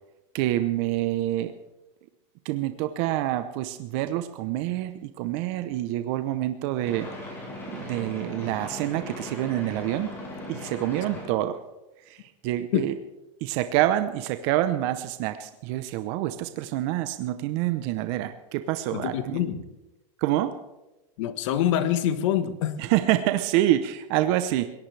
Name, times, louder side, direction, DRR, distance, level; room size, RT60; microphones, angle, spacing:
voice 1, 0.3-1.5 2.4-7.1 7.7-10.1 10.5-11.6 12.1-12.9 13.4-19.4 20.2-20.6 22.8-24.7, right 14 dB, 55° right, 10 dB, 0.9 m, -27 dB
sound 1, 6.8-11.4, left 1 dB, 15° left, 6.5 m, -38 dB
voice 2, 18.9-19.6 21.2-22.8, left 11 dB, 70° left, 11 dB, 1.4 m, -26 dB
22.0 x 18.0 x 3.4 m, 1.0 s
supercardioid pair, 145°, 17 cm